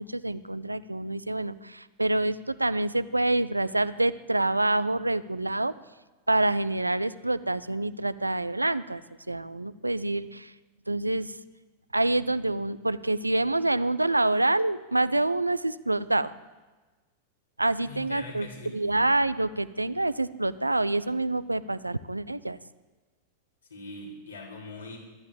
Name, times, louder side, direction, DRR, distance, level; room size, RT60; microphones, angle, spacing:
voice 1, 0.0-5.7 6.3-9.0 9.3-10.5 10.9-11.4 11.9-16.3 17.6-22.6, right 2 dB, 85° right, 16 dB, 0.7 m, -27 dB
voice 2, 17.8-18.7 23.7-25.0, left 2 dB, 75° left, -2 dB, 6.1 m, -42 dB
24.5 x 12.5 x 8.5 m, 1.3 s
figure-of-eight pair, 90°, 0 cm